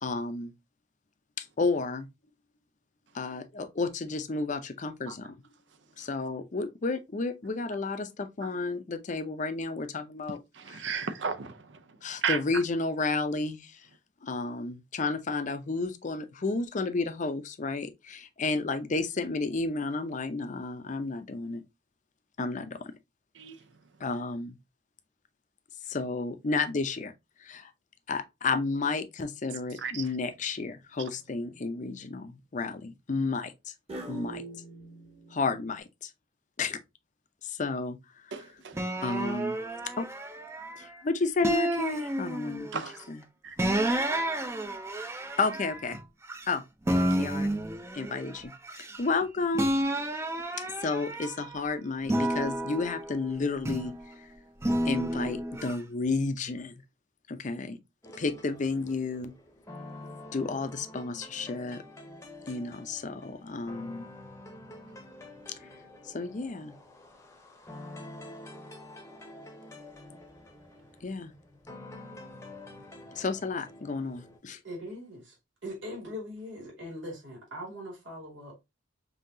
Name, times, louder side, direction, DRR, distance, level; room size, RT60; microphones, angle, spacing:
voice 1, 0.0-0.5 1.4-2.1 3.1-5.3 6.0-10.4 10.7-10.8 12.0-13.8 14.2-21.6 22.4-22.9 24.0-24.6 25.9-27.1 27.4-27.7 28.1-33.7 34.1-34.4 35.3-36.1 36.6-36.8 37.4-38.0 39.0-39.6 40.0-40.1 40.8-42.8 43.1-43.2 45.4-46.0 46.5-46.6 47.2-47.5 47.9-48.5 49.0-49.7 50.8-53.9 54.8-56.7 57.3-57.8 58.2-59.3 60.3-61.8 62.5-64.1 66.1-66.7 71.0-71.3 73.1-74.6, left 3 dB, 40° left, 0.5 m, -31 dB
voice 2, 10.5-11.7 12.2-12.4 23.4-23.6 29.8-30.0 38.3-38.8 42.7-43.0 43.4-43.5, right 6 dB, 70° right, 0.6 m, -33 dB
sound 1, 30.0-30.5 31.1-31.6 33.9-35.8, right 1 dB, 35° right, 1.3 m, -44 dB
sound 2, 38.7-40.9 41.4-42.8 43.6-46.5 46.9-49.2 49.5-51.6 52.0-54.0 54.6-55.8, right 1 dB, 15° right, 0.5 m, -31 dB
sound 3, 58.0-74.4, left 1 dB, 15° left, 0.8 m, -48 dB
voice 3, 74.6-75.4 75.6-78.6, equal, 85° right, 2.5 m, -41 dB
5.4 x 2.8 x 2.6 m
head